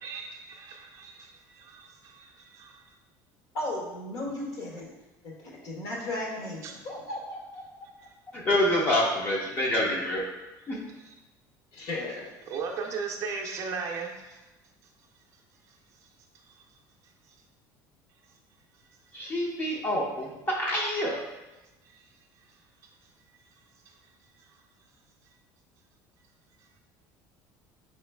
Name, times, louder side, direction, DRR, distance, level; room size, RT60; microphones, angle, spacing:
voice 1, 0.0-2.9 6.6-6.7 9.5-9.6 10.9-11.1 12.5-14.4 21.9-22.1 23.9-24.0, right 5 dB, 40° right, 1 dB, 0.5 m, -37 dB
voice 2, 3.5-4.9 5.4-7.9 11.7-12.3, left 1 dB, 50° left, -2 dB, 1.2 m, -35 dB
voice 3, 8.3-10.2 10.7-10.8 19.1-21.2, left 1 dB, 25° left, -2 dB, 0.7 m, -27 dB
5.0 x 3.0 x 3.3 m, 1.0 s
cardioid pair, 165°, 8 cm